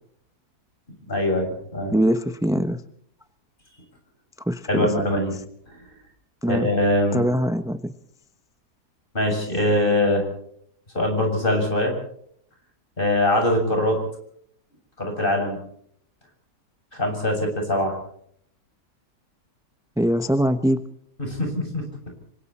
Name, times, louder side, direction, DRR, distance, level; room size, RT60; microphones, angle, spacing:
voice 1, 1.1-1.9 4.7-5.3 6.5-7.2 9.1-10.3 10.9-11.9 13.0-14.0 15.0-15.6 16.9-18.0 21.2-21.8, left 1 dB, 35° left, 2 dB, 7.6 m, -22 dB
voice 2, 1.9-2.8 4.5-4.9 6.4-6.7 7.1-7.9 20.0-20.8, equal, 5° right, 9 dB, 0.8 m, -22 dB
27.5 x 24.5 x 4.3 m, 0.67 s
omnidirectional pair, 1.6 m